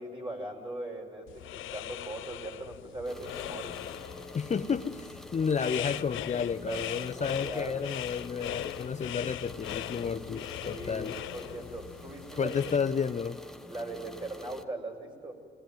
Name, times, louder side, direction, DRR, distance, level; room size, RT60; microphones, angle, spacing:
voice 1, 0.0-3.8 6.7-7.9 10.6-12.5 13.7-15.3, right 2 dB, 25° right, 2 dB, 5.2 m, -40 dB
sound 1, 1.3-12.8, left 14 dB, 80° left, 0.6 m, -40 dB
sound 2, 3.0-14.6, left 1 dB, ahead, 1.1 m, -47 dB
voice 2, 4.3-11.1 12.4-13.4, left 6 dB, 35° left, 8 dB, 0.8 m, -31 dB
22.5 x 17.0 x 9.3 m, 2.4 s
cardioid pair, 90°, 20 cm